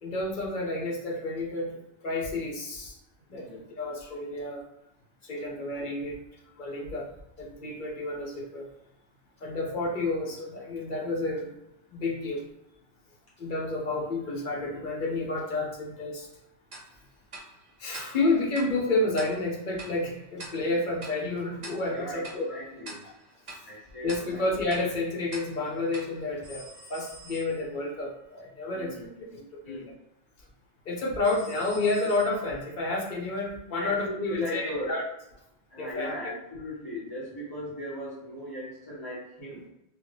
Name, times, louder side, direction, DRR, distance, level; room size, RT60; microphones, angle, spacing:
voice 1, 0.0-3.0 3.3-4.6 5.2-6.2 6.6-7.1 7.4-8.7 9.4-11.5 11.9-12.4 13.4-16.3 17.8-22.5 24.0-28.9 29.3-29.9 30.9-35.0 35.8-36.3, left 2 dB, 55° left, -1 dB, 0.8 m, -30 dB
voice 2, 3.3-3.6 21.9-23.0 23.7-24.4 28.7-29.3 29.6-29.9 33.8-35.0 35.7-39.6, left 1 dB, 20° left, -6 dB, 1.1 m, -37 dB
Tick-tock, 16.7-27.2, right 2 dB, 45° right, 0.7 m, -47 dB
sound 1, 26.4-27.9 31.2-32.7, equal, 80° right, 0.9 m, -49 dB
2.8 x 2.4 x 3.3 m, 0.85 s
omnidirectional pair, 1.1 m